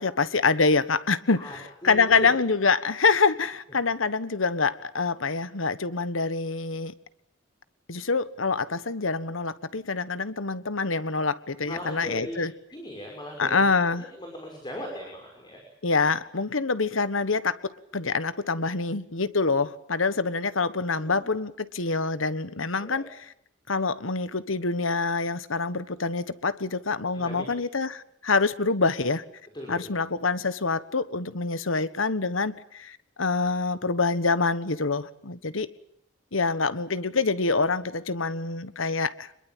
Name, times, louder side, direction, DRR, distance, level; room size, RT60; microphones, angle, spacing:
voice 1, 0.0-6.9 7.9-12.5 13.4-14.1 15.8-23.1 23.7-29.2 29.7-35.7 36.3-39.3, left 4 dB, 85° left, 14 dB, 1.4 m, -26 dB
voice 2, 1.8-2.3 11.6-12.4 12.7-15.6 20.9-21.3 22.8-23.0 27.1-27.5 29.5-29.9, left 1 dB, 25° left, 1 dB, 5.9 m, -39 dB
26.5 x 22.0 x 9.1 m, 0.72 s
head